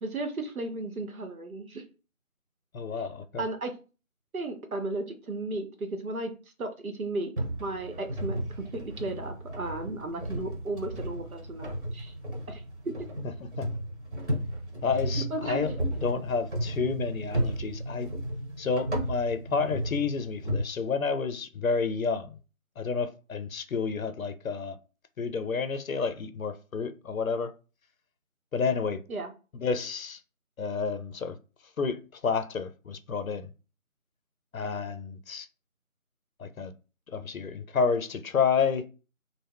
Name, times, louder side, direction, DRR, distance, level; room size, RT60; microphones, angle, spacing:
voice 1, 0.0-1.8 3.4-3.7 4.3-6.3 6.6-7.3 7.6-12.1 12.5-12.9 15.3-15.8 29.1-29.3, right 2 dB, 80° right, 0.8 m, -34 dB
voice 2, 2.7-3.5 13.4-13.7 14.8-15.7 16.0-18.1 18.6-22.3 22.8-24.8 25.2-27.5 28.5-29.0 29.5-30.2 30.6-31.4 31.8-33.5 34.5-35.5 36.4-36.7 37.1-38.8, left 5 dB, 75° left, 0.5 m, -30 dB
sound 1, 7.4-20.6, right 1 dB, 55° right, 1.1 m, -34 dB
2.2 x 2.0 x 3.4 m
figure-of-eight pair, 180°, 42 cm